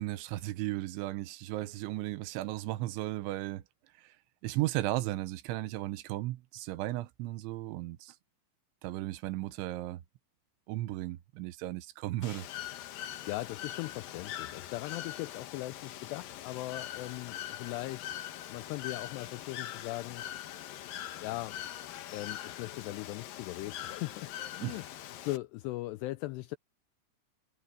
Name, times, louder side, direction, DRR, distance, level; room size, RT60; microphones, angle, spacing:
voice 1, 0.0-3.6 4.0-4.2 4.4-8.2 8.8-10.0 10.7-12.5 24.6-24.8, right 17 dB, 85° right, 3.2 m, -35 dB
Bird / Water, 12.2-25.4, left 12 dB, 70° left, 2.3 m, -42 dB
voice 2, 13.3-18.1 18.5-20.2 21.2-21.6 22.1-24.8 25.2-26.6, left 18 dB, 85° left, 2.4 m, -39 dB
omnidirectional pair, 5.4 m